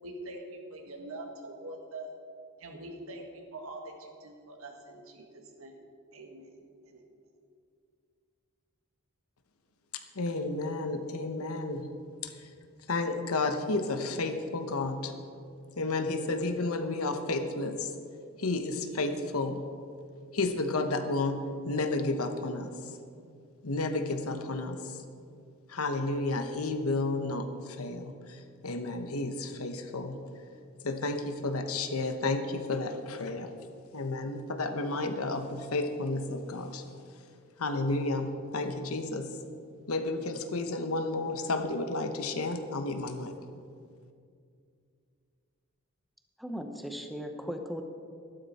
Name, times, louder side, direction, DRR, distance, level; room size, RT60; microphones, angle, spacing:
voice 1, 0.0-2.1 2.6-5.8 6.1-6.5 6.8-7.1, right 2 dB, 65° right, 3 dB, 1.6 m, -44 dB
voice 2, 9.9-11.9 12.2-12.3 12.9-15.1 15.8-17.9 18.4-19.6 20.3-22.7 23.6-25.0 25.7-30.2 30.8-33.5 33.9-36.8 37.6-39.3 39.9-43.3, left 2 dB, 75° left, 7 dB, 1.0 m, -32 dB
voice 3, 46.4-47.8, equal, ahead, 5 dB, 0.7 m, -37 dB
13.0 x 12.0 x 4.2 m, 2.3 s
head